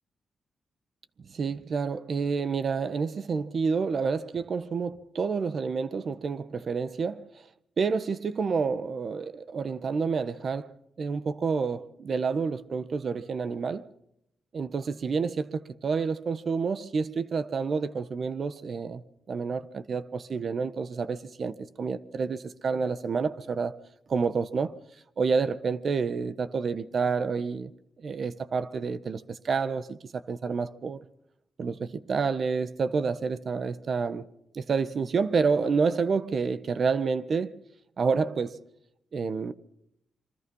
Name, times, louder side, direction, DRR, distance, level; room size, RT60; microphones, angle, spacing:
voice 1, 1.2-7.3 7.8-13.8 14.5-19.0 19.3-23.8 24.1-24.7 25.2-27.7 28.0-31.0 31.6-34.2 34.5-37.6 38.0-38.6 39.1-39.5, right 5 dB, 55° right, 1.3 m, -29 dB
27.0 x 24.5 x 5.6 m
cardioid pair, 75°, 0 cm